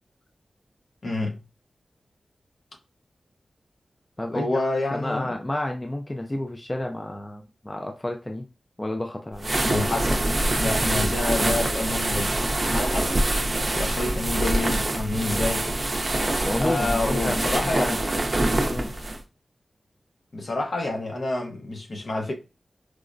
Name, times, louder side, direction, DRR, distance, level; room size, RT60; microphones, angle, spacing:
voice 1, 1.0-1.4 4.3-5.3 9.6-10.2 10.6-12.4 12.7-13.2 13.7-15.7 16.6-18.0 20.3-22.3, left 2 dB, 60° left, 0.8 m, -28 dB
voice 2, 4.2-4.5 4.9-8.4 8.8-9.5 16.4-18.0 18.7-18.9, left 1 dB, 20° left, 0.4 m, -30 dB
sound 1, 9.4-19.2, right 1 dB, 40° right, 0.5 m, -25 dB
4.6 x 2.1 x 2.5 m
wide cardioid pair, 90°, 0 cm